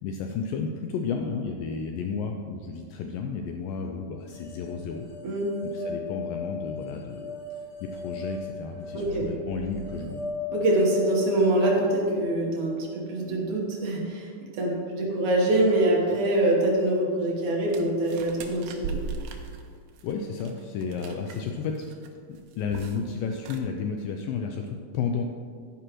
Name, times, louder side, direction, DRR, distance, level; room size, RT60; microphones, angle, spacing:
voice 1, 0.0-5.1 5.6-10.3 20.0-21.9 22.3-25.2, left 5 dB, 80° left, 3 dB, 2.1 m, -32 dB
sound 1, 4.3-13.5, left 5 dB, 40° left, 2.4 m, -37 dB
voice 2, 8.9-9.2 10.5-18.9, right 1 dB, 60° right, -2 dB, 2.4 m, -24 dB
sound 2, 17.7-21.5 21.8-22.1 22.4-23.1 23.3-23.6, right 5 dB, 80° right, 2.3 m, -37 dB
11.0 x 10.0 x 3.0 m, 2.1 s
omnidirectional pair, 4.3 m